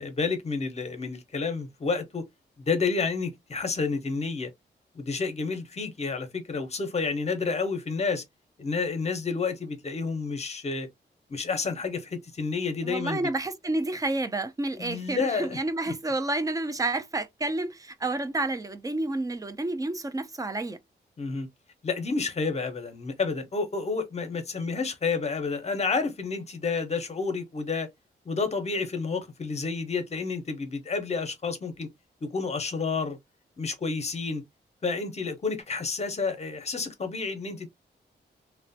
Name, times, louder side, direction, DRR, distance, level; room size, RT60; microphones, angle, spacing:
voice 1, 0.0-2.2 2.6-4.5 4.9-8.2 8.6-10.9 11.3-13.2 14.8-15.6 15.9-16.0 21.2-21.5 21.8-27.9 28.3-31.9 32.2-33.2 33.6-34.4 34.8-37.7, left 4 dB, 35° left, 0.7 m, -30 dB
voice 2, 12.8-20.8, right 2 dB, 20° right, 0.4 m, -30 dB
3.0 x 2.1 x 2.6 m
wide cardioid pair, 140°, 18 cm